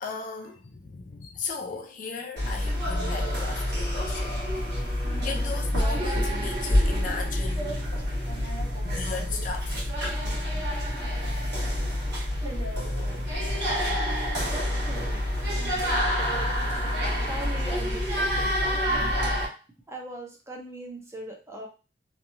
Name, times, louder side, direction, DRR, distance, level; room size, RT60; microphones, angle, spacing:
voice 1, 0.0-4.9 5.2-7.9 8.8-9.8 10.4-10.7 13.0-14.2, left 4 dB, 45° left, 0.4 m, -37 dB
sound 1, 2.4-19.5, equal, 60° right, 1.4 m, -27 dB
voice 2, 14.0-15.3 15.5-16.5 16.8-19.2 19.9-21.7, right 1 dB, 15° right, 0.5 m, -41 dB
2.9 x 2.3 x 2.6 m
head